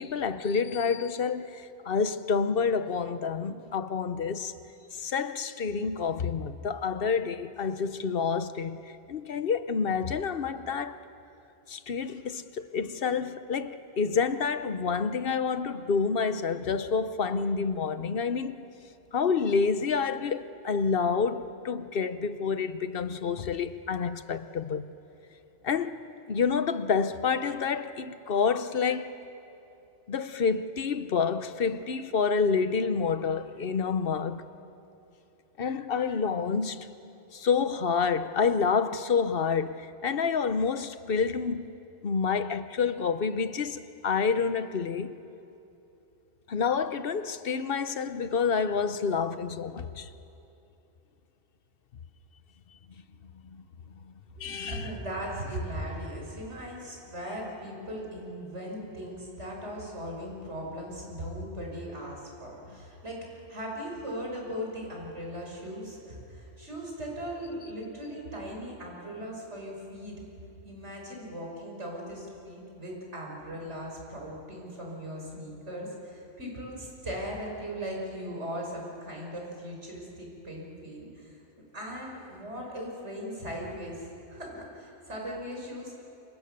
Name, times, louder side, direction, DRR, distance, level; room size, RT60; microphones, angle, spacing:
voice 1, 0.0-4.5 5.0-8.8 9.1-11.0 11.7-18.6 19.1-24.9 25.6-26.0 26.3-29.2 30.1-34.5 35.6-36.9 37.3-41.7 42.0-45.2 46.5-50.1 53.5-53.6 54.4-54.9, left 5 dB, 55° left, 1.0 m, -28 dB
voice 2, 54.5-70.2 70.6-81.4 81.7-85.9, equal, 85° right, 6.0 m, -38 dB
28.5 x 25.0 x 6.7 m
omnidirectional pair, 1.2 m